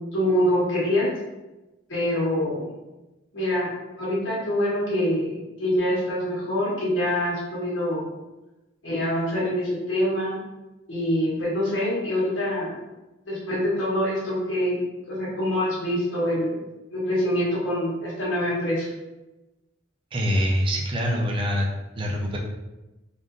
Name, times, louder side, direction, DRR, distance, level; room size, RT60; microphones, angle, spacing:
voice 1, 0.1-1.1 1.9-2.7 3.3-3.7 4.0-8.1 8.8-10.4 10.9-12.8 13.3-14.8 15.1-16.6 16.9-18.9, equal, 60° left, -6 dB, 1.3 m, -25 dB
voice 2, 20.1-21.7 22.0-22.4, equal, 25° right, -1 dB, 0.4 m, -24 dB
3.5 x 2.5 x 2.6 m, 1.1 s
head